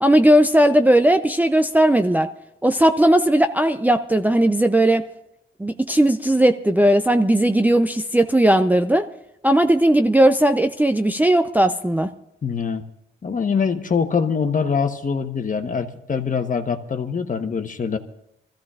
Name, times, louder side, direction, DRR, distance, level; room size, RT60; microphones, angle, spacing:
voice 1, 0.0-2.3 2.6-5.1 5.6-9.1 9.4-12.1, right 1 dB, 10° right, 6 dB, 0.5 m, -17 dB
voice 2, 12.4-12.8 13.2-18.0, left 6 dB, 40° left, 7 dB, 1.1 m, -23 dB
24.5 x 14.5 x 2.5 m, 0.78 s
cardioid pair, 75°, 21 cm